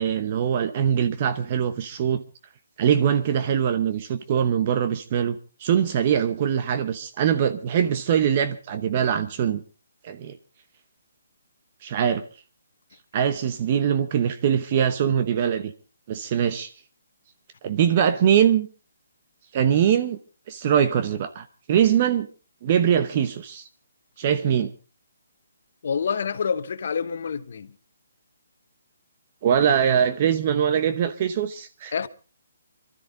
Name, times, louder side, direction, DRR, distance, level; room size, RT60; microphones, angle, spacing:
voice 1, 0.0-2.2 2.8-9.6 10.0-10.4 11.8-12.2 13.1-15.7 16.1-16.7 17.6-18.7 19.5-20.2 20.5-22.3 22.6-23.7 24.2-24.7 29.4-31.9, right 8 dB, 35° right, 0.9 m, -22 dB
voice 2, 25.8-27.7 31.9-32.1, left 6 dB, 60° left, 1.1 m, -27 dB
23.5 x 13.0 x 3.8 m
hypercardioid pair, 155°, 0 cm